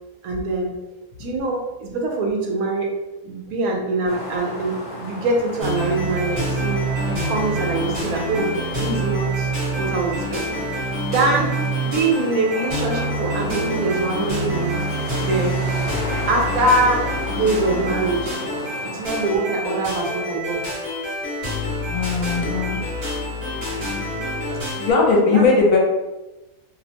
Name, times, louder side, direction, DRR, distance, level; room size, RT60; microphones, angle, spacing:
voice 1, 0.2-0.8 1.2-2.9 3.2-6.8 7.1-9.5 9.8-10.6 11.0-14.8 15.2-15.6 16.3-18.3 18.8-20.6 25.3-25.5, right 2 dB, 80° right, 0 dB, 1.1 m, -23 dB
sound 1, 4.1-19.3, left 1 dB, 45° left, 0.6 m, -34 dB
sound 2, 5.6-24.9, right 1 dB, 40° right, 1.3 m, -26 dB
voice 2, 21.9-22.8 24.5-25.8, left 4 dB, 70° left, -2 dB, 1.0 m, -19 dB
2.8 x 2.0 x 2.8 m, 1.0 s
omnidirectional pair, 1.5 m